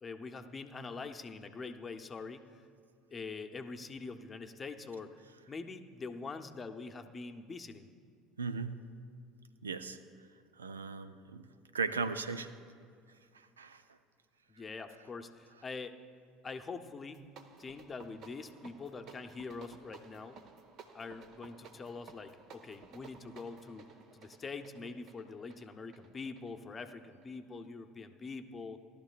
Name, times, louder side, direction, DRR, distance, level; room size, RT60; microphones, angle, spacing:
voice 1, 0.0-2.7 3.1-5.2 5.5-7.9 14.5-15.9 16.4-17.2 17.6-20.4 20.9-23.8 24.1-28.8, left 4 dB, 30° left, 7 dB, 0.8 m, -44 dB
voice 2, 8.4-8.8 9.6-10.0 10.6-11.4 11.7-12.5 13.6-13.8, right 4 dB, 85° right, 12 dB, 0.4 m, -37 dB
sound 1, 17.0-27.3, right 5 dB, 50° right, 0.9 m, -56 dB
17.5 x 12.0 x 2.5 m, 2.2 s
hypercardioid pair, 70°, 0 cm